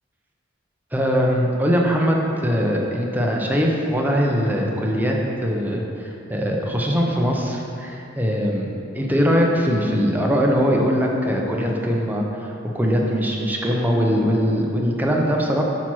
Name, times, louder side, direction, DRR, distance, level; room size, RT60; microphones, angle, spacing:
voice 1, 0.9-8.7 8.9-15.6, equal, 10° right, -1 dB, 0.7 m, -21 dB
5.8 x 4.5 x 6.1 m, 2.7 s
head